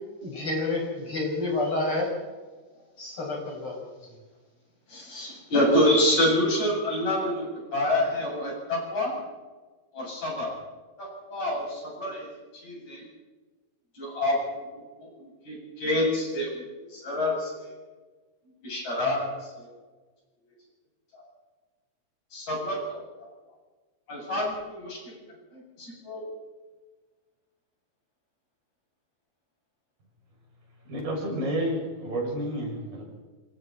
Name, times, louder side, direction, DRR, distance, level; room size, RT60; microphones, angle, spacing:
voice 1, 0.2-2.1 3.0-3.8, left 2 dB, 35° left, -1 dB, 6.8 m, -29 dB
voice 2, 4.9-9.1 9.9-10.5 11.0-12.3 12.6-13.0 14.0-17.7 18.6-19.7 21.1-21.2 22.3-23.0 24.1-26.2, left 1 dB, 55° left, -3 dB, 9.5 m, -28 dB
voice 3, 30.9-33.1, right 1 dB, 80° right, -1 dB, 8.0 m, -30 dB
26.5 x 24.5 x 4.4 m, 1.3 s
omnidirectional pair, 4.0 m